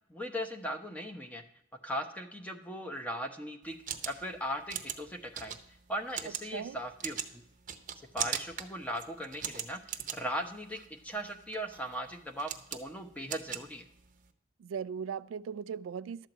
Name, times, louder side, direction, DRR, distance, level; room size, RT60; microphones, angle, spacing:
voice 1, 0.1-1.4 1.8-3.8 4.1-5.6 5.9-7.4 8.1-13.9, equal, 5° left, 0.9 m, -38 dB
sound 1, 3.6-14.3, right 9 dB, 40° right, 0.8 m, -41 dB
voice 2, 14.6-16.3, right 7 dB, 85° right, 0.3 m, -38 dB
12.0 x 4.6 x 8.0 m
head